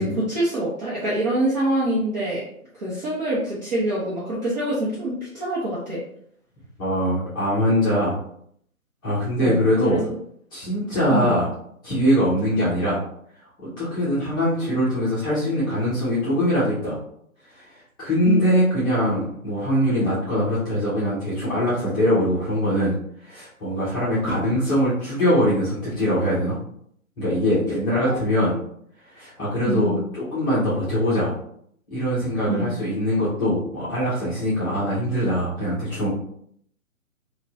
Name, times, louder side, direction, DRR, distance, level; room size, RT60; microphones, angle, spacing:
voice 1, 0.0-2.5 2.8-6.0 9.4-10.0 11.1-11.3 18.3-18.4 28.0-28.1 29.6-30.0 32.5-32.7, right 1 dB, 30° right, -9 dB, 1.0 m, -25 dB
voice 2, 6.8-8.2 9.0-10.0 10.5-11.5 11.8-13.0 13.6-17.0 17.5-17.6 18.0-22.9 23.2-26.6 27.2-28.6 29.1-31.3 31.9-36.1, equal, 15° left, -10 dB, 0.8 m, -22 dB
4.1 x 2.5 x 2.7 m, 0.67 s
figure-of-eight pair, 135°, 42 cm